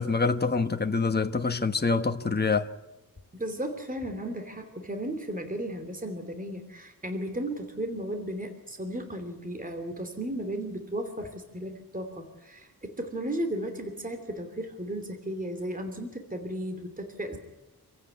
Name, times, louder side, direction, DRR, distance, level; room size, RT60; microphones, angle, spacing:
voice 1, 0.0-2.7, left 4 dB, 25° left, 1.3 m, -26 dB
voice 2, 3.3-17.4, right 1 dB, 20° right, 2.9 m, -35 dB
27.0 x 16.0 x 9.4 m
wide cardioid pair, 125°, 39 cm